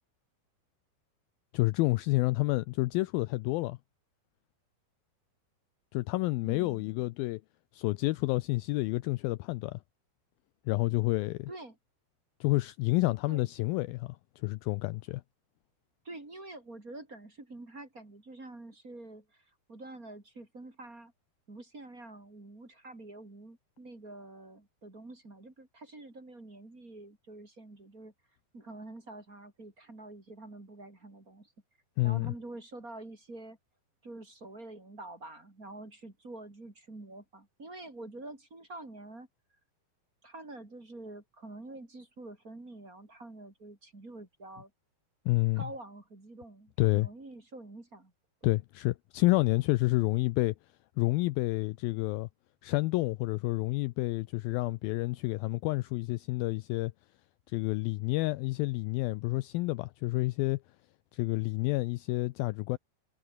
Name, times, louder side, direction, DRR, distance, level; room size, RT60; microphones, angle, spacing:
voice 1, 1.5-3.8 5.9-7.4 7.7-9.8 10.7-11.5 12.4-15.2 32.0-32.3 45.3-45.7 46.8-47.1 48.4-50.6 51.0-52.3 52.6-56.9 57.5-60.6 61.1-62.8, left 21 dB, 80° left, 2.2 m, -29 dB
voice 2, 6.4-6.9 11.5-11.8 13.3-13.5 16.0-21.1 21.5-28.1 28.5-31.5 32.0-33.6 34.0-39.3 40.2-44.7 45.6-48.1 48.4-48.6, right 2 dB, 20° right, 4.1 m, -47 dB
omnidirectional pair, 4.6 m